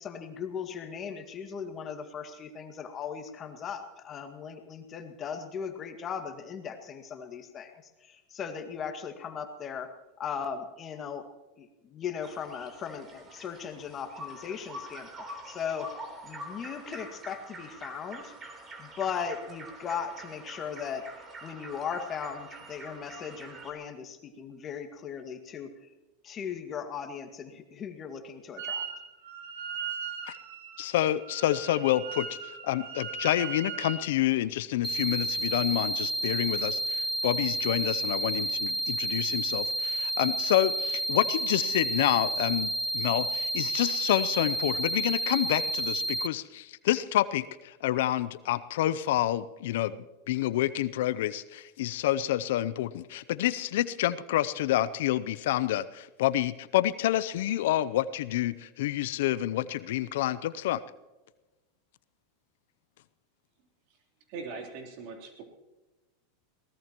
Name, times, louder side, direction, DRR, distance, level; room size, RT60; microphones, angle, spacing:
voice 1, 0.0-7.7 8.0-9.9 10.2-11.2 11.6-15.9 16.2-18.3 18.8-21.0 21.4-25.7 26.2-28.9, left 7 dB, 35° left, 6 dB, 1.9 m, -38 dB
sound 1, 12.2-23.7, right 1 dB, 25° right, 3.5 m, -45 dB
Wind instrument woodwind instrument, 28.6-29.0 29.2-34.1, right 6 dB, 75° right, 3.5 m, -38 dB
voice 2, 30.8-60.8, left 13 dB, 70° left, 16 dB, 0.6 m, -28 dB
sound 2, 34.8-46.3, right 1 dB, ahead, 0.4 m, -30 dB
voice 3, 64.3-65.4, right 4 dB, 55° right, 2 dB, 3.4 m, -40 dB
22.5 x 18.0 x 3.0 m, 1.1 s
hypercardioid pair, 105°, 0 cm